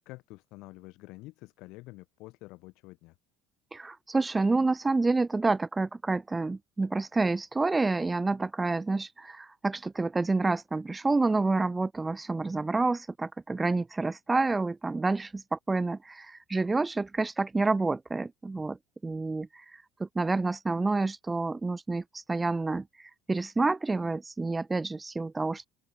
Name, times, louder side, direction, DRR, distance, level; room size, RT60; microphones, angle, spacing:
voice 1, 0.0-3.2, left 21 dB, 60° left, 5.7 m, -48 dB
voice 2, 3.7-18.8 19.0-25.7, right 3 dB, 10° right, 0.6 m, -28 dB
open air
cardioid pair, 140°, 0 cm